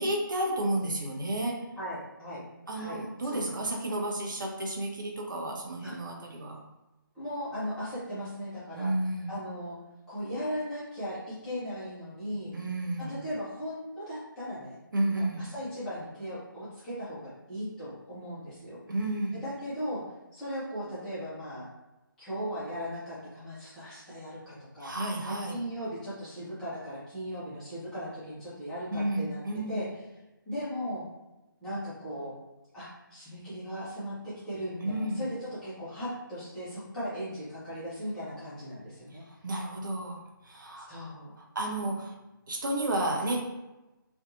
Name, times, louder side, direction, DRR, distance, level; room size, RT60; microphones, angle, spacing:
voice 1, 0.0-1.6 2.7-6.6 8.7-9.3 12.5-13.2 14.9-15.4 18.9-19.4 24.8-25.6 28.9-29.8 34.8-35.2 39.1-40.9 41.5-42.1 42.5-43.4, right 1 dB, 60° right, -1 dB, 0.6 m, -31 dB
voice 2, 1.8-2.4 2.7-3.5 5.8-6.0 7.1-8.9 9.3-9.8 10.1-12.5 13.0-14.8 15.1-18.8 19.3-20.0 20.3-21.7 22.2-24.9 25.2-29.4 29.7-29.9 30.5-31.1 31.6-32.3 32.7-39.2 40.8-41.3, equal, 5° left, -13 dB, 0.6 m, -37 dB
2.6 x 2.4 x 2.5 m, 1.0 s
figure-of-eight pair, 150°, 12 cm